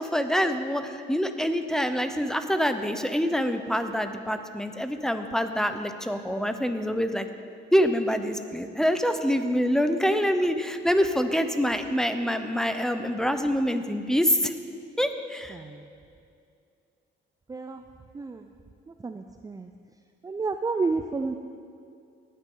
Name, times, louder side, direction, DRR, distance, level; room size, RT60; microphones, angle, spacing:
voice 1, 0.0-7.3 7.7-14.5 15.0-15.6, equal, 5° left, 8 dB, 0.8 m, -26 dB
voice 2, 15.5-15.8 17.5-17.8 18.1-18.4 19.0-19.7 20.2-21.3, right 4 dB, 20° right, 7 dB, 0.4 m, -30 dB
19.0 x 9.3 x 3.9 m, 2.4 s
cardioid pair, 90°, 20 cm